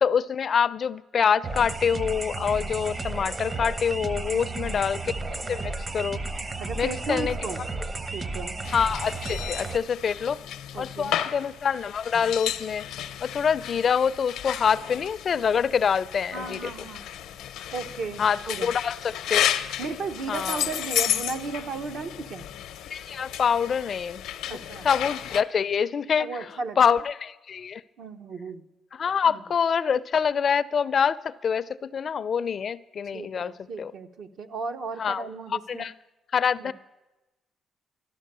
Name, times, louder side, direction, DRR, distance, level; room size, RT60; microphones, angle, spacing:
voice 1, 0.0-5.1 5.5-6.2 6.8-7.4 8.7-10.4 10.8-12.8 13.2-16.7 18.2-19.5 20.3-20.6 22.9-24.2 24.8-27.8 28.9-33.9 35.0-35.9 36.3-36.7, left 7 dB, 50° left, 16 dB, 0.4 m, -26 dB
sound 1, 1.4-9.8, right 3 dB, 30° right, 0.8 m, -33 dB
voice 2, 4.3-4.8 6.6-7.6 8.1-8.6 10.7-11.2 16.3-17.1 17.7-18.7 19.8-22.5 24.5-24.9 26.2-27.0 28.0-28.7 29.2-29.4 33.1-35.9 36.6-36.7, right 4 dB, 70° right, 6 dB, 0.9 m, -35 dB
sound 2, 8.6-25.4, left 11 dB, 90° left, 0.6 m, -33 dB
13.5 x 12.0 x 6.7 m, 1.1 s
cardioid pair, 90°, 0 cm